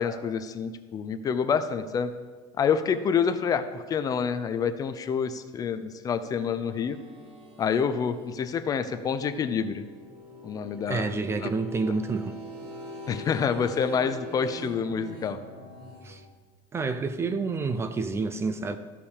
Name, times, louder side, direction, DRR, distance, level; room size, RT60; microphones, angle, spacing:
voice 1, 0.0-2.1 2.6-7.0 7.6-9.8 10.4-11.1 11.4-11.5 11.9-12.0 13.1-15.4, left 6 dB, 25° left, 11 dB, 0.6 m, -27 dB
sound 1, 6.2-16.3, equal, 45° right, 1.8 m, -44 dB
voice 2, 10.9-12.4 16.0-16.2 16.7-18.8, right 4 dB, 20° right, 11 dB, 0.5 m, -29 dB
14.0 x 5.9 x 6.5 m, 1.4 s
cardioid pair, 150°, 14 cm